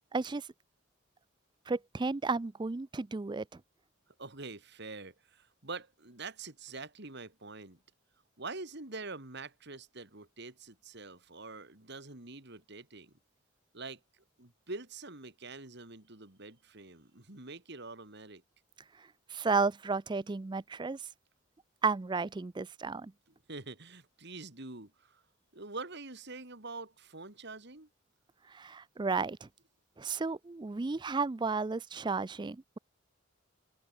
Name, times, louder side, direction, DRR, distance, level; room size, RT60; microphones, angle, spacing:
voice 1, 0.1-0.5 1.7-3.6 19.3-21.0 21.8-23.1 28.5-29.5 30.0-32.8, right 4 dB, 20° right, 0.4 m, -33 dB
voice 2, 4.2-7.8 8.4-13.1 13.7-14.0 14.4-18.4 23.5-25.2 25.5-27.9, right 3 dB, 55° right, 2.7 m, -45 dB
open air
head